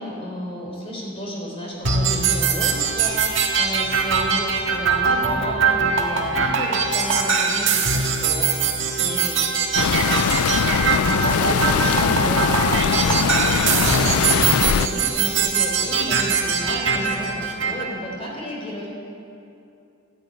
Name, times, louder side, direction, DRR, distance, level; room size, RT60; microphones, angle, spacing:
voice 1, 0.0-8.5 9.0-10.3 10.5-18.9, equal, 25° left, -2 dB, 3.8 m, -32 dB
sound 1, 1.8-17.8, right 5 dB, 60° right, 1.7 m, -22 dB
sound 2, 9.7-14.9, left 7 dB, 85° left, 0.4 m, -21 dB
14.5 x 10.5 x 9.0 m, 2.7 s
head